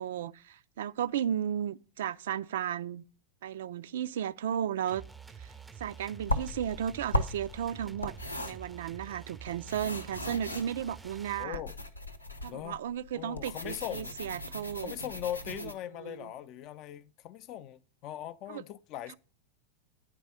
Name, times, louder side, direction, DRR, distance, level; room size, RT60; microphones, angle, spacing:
voice 1, 0.0-3.0 3.4-5.0 5.4-5.5 5.8-8.1 8.4-11.6 12.4-14.9 15.5-15.7 16.0-16.3 18.5-18.6, right 9 dB, 60° right, 0.4 m, -34 dB
sound 1, 4.9-11.4, right 6 dB, 10° right, 0.5 m, -48 dB
sound 2, 6.2-15.7, left 1 dB, 85° left, 0.8 m, -37 dB
voice 2, 11.4-11.8 12.5-12.8 13.1-14.2 14.8-19.2, left 11 dB, 40° left, 0.5 m, -40 dB
9.6 x 4.7 x 6.6 m
figure-of-eight pair, 90°, 0 cm